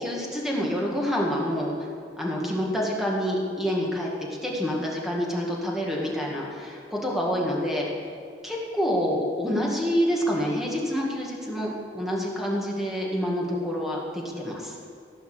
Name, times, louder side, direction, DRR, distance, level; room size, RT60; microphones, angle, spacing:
voice 1, 0.0-1.7 2.2-4.1 4.4-7.9 8.4-14.7, equal, ahead, -3 dB, 2.0 m, -27 dB
16.0 x 5.7 x 8.0 m, 2.2 s
head